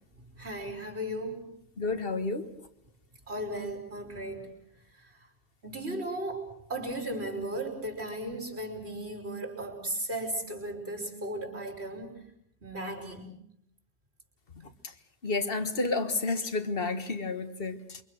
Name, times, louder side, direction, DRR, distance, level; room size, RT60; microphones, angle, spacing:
voice 1, 0.2-1.5 3.3-4.5 5.0-5.2 5.6-12.2 12.6-13.3, right 1 dB, 70° right, 5.5 m, -36 dB
voice 2, 1.8-2.5 15.2-18.0, left 3 dB, 60° left, 1.7 m, -30 dB
28.0 x 24.0 x 6.4 m
omnidirectional pair, 1.1 m